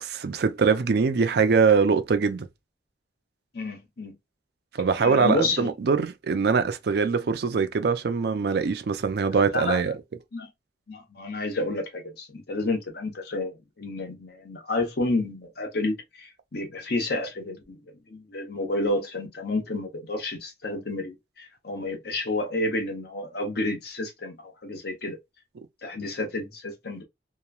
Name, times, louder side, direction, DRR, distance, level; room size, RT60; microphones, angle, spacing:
voice 1, 0.0-2.5 4.7-9.9, right 5 dB, 60° right, 0.4 m, -23 dB
voice 2, 3.5-4.1 5.0-5.7 9.5-9.8 10.3-10.5 10.9-17.8 18.1-25.2 25.8-27.0, left 2 dB, 60° left, 0.9 m, -30 dB
2.9 x 2.2 x 2.3 m
head